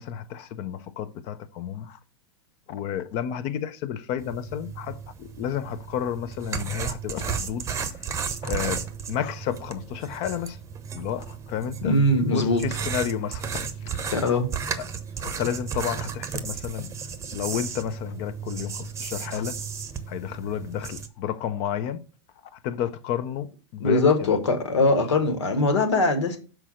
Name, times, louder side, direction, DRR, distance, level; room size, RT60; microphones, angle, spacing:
voice 1, 0.0-2.0 2.7-7.9 8.4-8.8 9.1-10.6 10.9-11.9 12.3-14.1 15.2-16.9 17.3-19.6 20.1-22.0 22.5-24.4, left 9 dB, 45° left, 0.9 m, -31 dB
sound 1, 4.2-21.1, right 7 dB, 20° right, 0.9 m, -34 dB
voice 2, 11.8-12.6 14.1-14.5 23.8-26.4, left 2 dB, 75° left, 1.9 m, -21 dB
6.1 x 4.6 x 6.4 m
hypercardioid pair, 100°, 15 cm